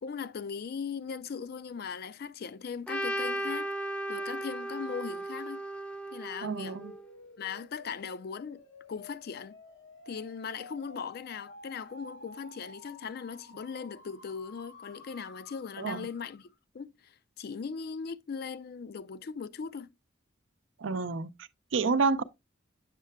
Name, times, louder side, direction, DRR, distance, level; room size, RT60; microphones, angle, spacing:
voice 1, 0.0-3.7 4.1-5.6 6.1-6.8 7.4-8.6 8.9-9.6 10.1-19.9, left 6 dB, 55° left, 0.4 m, -39 dB
Trumpet, 2.9-7.0, right 1 dB, 5° left, 0.6 m, -36 dB
voice 2, 6.4-6.9 15.8-16.1 20.8-22.2, right 4 dB, 85° right, 0.5 m, -29 dB
sound 1, 6.7-16.6, left 2 dB, 85° left, 1.2 m, -52 dB
7.4 x 6.5 x 2.2 m
head